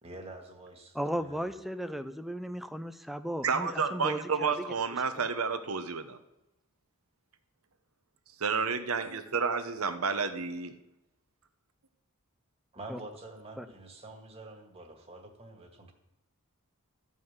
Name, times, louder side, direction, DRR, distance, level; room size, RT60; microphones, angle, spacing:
voice 1, 0.0-1.5 12.7-15.9, right 2 dB, 30° right, 2 dB, 1.9 m, -47 dB
voice 2, 0.9-4.7 12.9-13.0 13.6-13.7, equal, ahead, 9 dB, 0.6 m, -36 dB
voice 3, 3.4-6.2 8.4-10.7, right 5 dB, 70° right, 9 dB, 1.0 m, -30 dB
14.0 x 5.5 x 8.1 m, 0.93 s
head